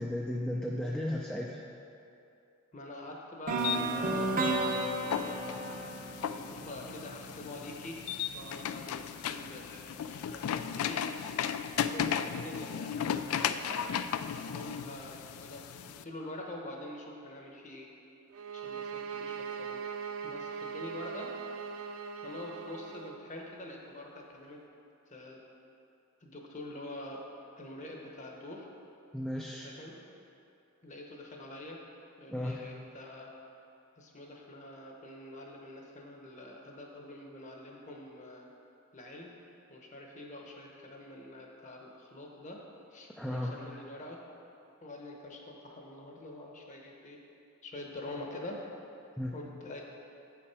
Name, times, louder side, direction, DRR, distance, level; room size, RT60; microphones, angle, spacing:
voice 1, 0.0-1.6 29.1-29.7 32.3-32.6 43.2-43.8 49.2-49.3, left 1 dB, 5° left, -3 dB, 0.4 m, -35 dB
voice 2, 2.7-5.8 6.3-8.0 8.3-11.1 11.8-13.8 14.4-17.9 18.5-19.8 20.2-21.3 22.2-24.6 25.1-25.4 26.2-27.2 27.6-28.7 29.6-30.0 30.8-31.8 32.2-33.3 34.0-38.5 38.9-39.3 39.7-42.6 42.9-44.2 44.8-47.2 47.6-48.6 49.3-49.8, left 1 dB, 35° left, 0 dB, 1.0 m, -45 dB
sound 1, 3.5-7.4, right 2 dB, 40° right, 0.7 m, -33 dB
sound 2, 3.6-16.0, left 8 dB, 80° left, 0.3 m, -36 dB
sound 3, 18.3-23.2, right 6 dB, 80° right, 0.4 m, -40 dB
8.3 x 5.9 x 4.8 m, 2.7 s
head